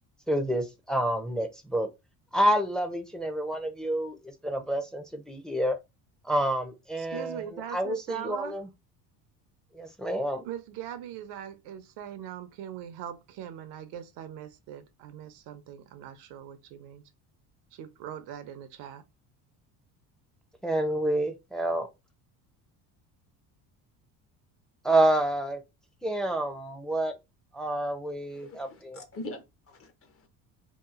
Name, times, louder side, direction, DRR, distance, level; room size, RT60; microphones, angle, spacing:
voice 1, 0.3-1.9 2.3-5.8 6.2-8.7 9.7-10.4 20.6-21.9 24.8-25.6 26.0-27.1 27.5-29.0, right 1 dB, ahead, 0.5 m, -28 dB
voice 2, 7.0-8.6 10.4-17.0 17.7-19.0, right 10 dB, 80° right, 0.7 m, -41 dB
voice 3, 28.3-30.3, left 2 dB, 35° left, 0.7 m, -43 dB
2.9 x 2.4 x 2.4 m
supercardioid pair, 90°, 39 cm